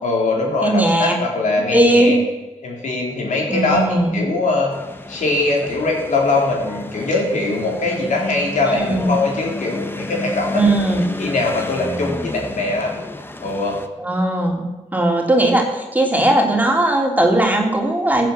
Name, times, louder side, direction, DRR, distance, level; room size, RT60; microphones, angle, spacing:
voice 1, 0.0-2.1 2.6-4.7 5.1-10.9 11.2-13.0 13.4-13.8, left 2 dB, 75° left, -1 dB, 4.0 m, -21 dB
voice 2, 0.6-1.2 1.7-2.2 3.5-4.2 8.7-9.1 10.5-11.0 14.0-14.6 14.9-18.3, right 1 dB, 15° right, 1 dB, 3.1 m, -18 dB
sound 1, 4.7-13.9, left 2 dB, 15° left, 1.3 m, -31 dB
15.0 x 7.6 x 7.4 m, 1.1 s
cardioid pair, 70°, 13 cm